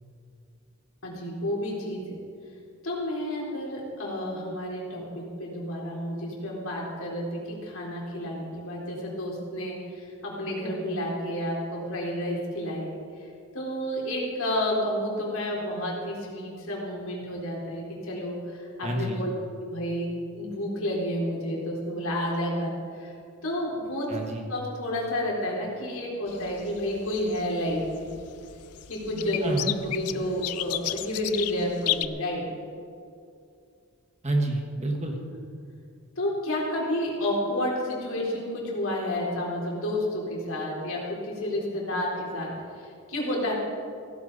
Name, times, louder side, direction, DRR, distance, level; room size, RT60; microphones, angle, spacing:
voice 1, 1.0-2.2 2.8-12.9 13.5-19.3 19.6-23.1 23.4-24.1 24.5-28.1 28.9-29.5 29.8-32.5 36.2-42.5 42.8-43.5, left 1 dB, 65° left, -4 dB, 4.2 m, -30 dB
voice 2, 18.8-19.3 24.1-24.5 29.4-29.7 34.2-35.2, right 1 dB, 30° right, 1 dB, 1.7 m, -28 dB
sound 1, 26.3-32.1, left 14 dB, 85° left, 0.6 m, -33 dB
16.5 x 15.5 x 4.2 m, 2.4 s
head